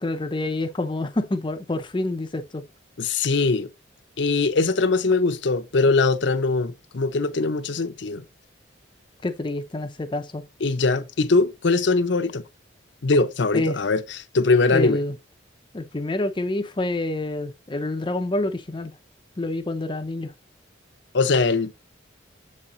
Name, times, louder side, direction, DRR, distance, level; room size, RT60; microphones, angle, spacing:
voice 1, 0.0-2.6 9.2-10.4 13.5-13.8 14.7-15.1 15.7-18.9 19.4-20.3, left 2 dB, 25° left, 0.5 m, -27 dB
voice 2, 3.0-3.7 4.2-8.2 10.6-12.4 13.0-15.0 21.1-21.7, left 3 dB, 60° left, 0.6 m, -21 dB
7.4 x 4.3 x 3.7 m
head